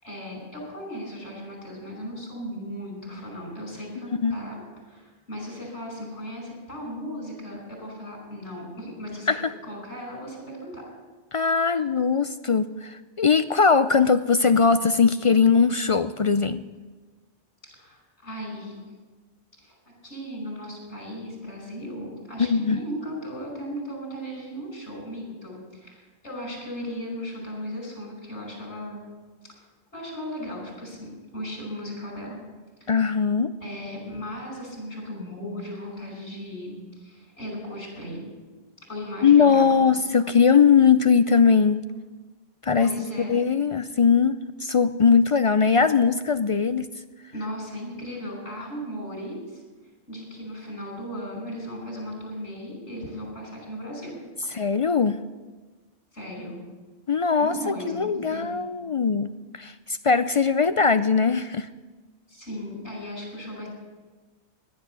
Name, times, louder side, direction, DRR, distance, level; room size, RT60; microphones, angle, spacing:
voice 1, 0.0-9.4 9.6-10.9 11.5-11.7 17.6-18.8 19.6-19.8 20.0-29.0 29.5-29.6 29.9-32.4 32.8-32.9 33.6-38.2 38.9-40.1 42.8-43.4 47.3-49.6 50.1-54.2 56.1-56.6 57.4-58.6 62.3-63.7, equal, 85° left, 1 dB, 5.7 m, -36 dB
voice 2, 11.3-16.6 22.4-22.8 32.9-33.5 39.2-41.8 42.6-42.9 43.3-46.9 54.5-55.2 57.1-61.7, left 5 dB, 55° left, 11 dB, 0.3 m, -20 dB
18.0 x 10.5 x 6.8 m, 1.3 s
omnidirectional pair, 1.1 m